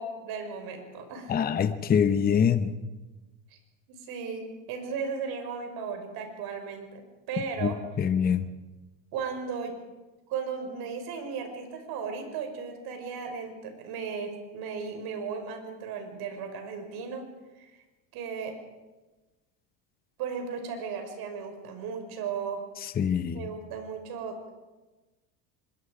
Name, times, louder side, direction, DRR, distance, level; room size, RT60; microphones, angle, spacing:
voice 1, 0.0-1.5 3.9-7.8 9.1-9.7 10.3-17.2 17.6-17.7 18.1-18.6 20.2-22.6 23.3-24.5, right 5 dB, 55° right, 5 dB, 5.0 m, -36 dB
voice 2, 1.3-2.7 7.6-8.5 23.0-23.5, left 7 dB, 20° left, 10 dB, 0.9 m, -25 dB
24.5 x 22.0 x 5.0 m, 1.2 s
supercardioid pair, 135°, 45 cm